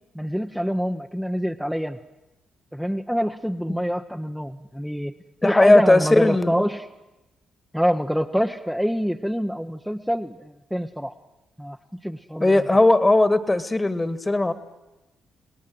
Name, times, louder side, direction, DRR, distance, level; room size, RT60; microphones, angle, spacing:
voice 1, 0.1-2.0 2.7-5.1 5.4-6.9 7.7-11.1 11.6-11.8 12.0-12.6, equal, ahead, 4 dB, 1.0 m, -26 dB
voice 2, 5.4-6.5 12.4-14.5, left 2 dB, 20° left, 12 dB, 1.9 m, -18 dB
28.5 x 18.5 x 7.9 m, 1.0 s
supercardioid pair, 50°, 0 cm